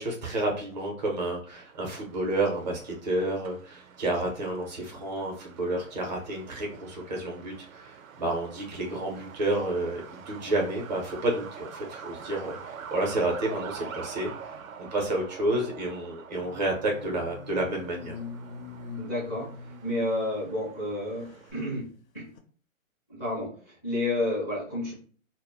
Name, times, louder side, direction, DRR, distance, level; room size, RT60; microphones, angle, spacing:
voice 1, 0.0-18.1, right 2 dB, 30° right, 0 dB, 0.6 m, -30 dB
Truck, 1.5-21.5, right 6 dB, 75° right, 0.6 m, -45 dB
sound 1, 16.4-20.6 21.1-21.6 22.4-22.5, left 4 dB, 75° left, 0.6 m, -43 dB
voice 2, 19.0-19.5 19.8-21.2 21.5-21.8 22.1-22.3 23.1-24.9, left 1 dB, 10° left, -10 dB, 0.4 m, -30 dB
2.1 x 2.0 x 3.3 m, 0.43 s
hypercardioid pair, 150°, 42 cm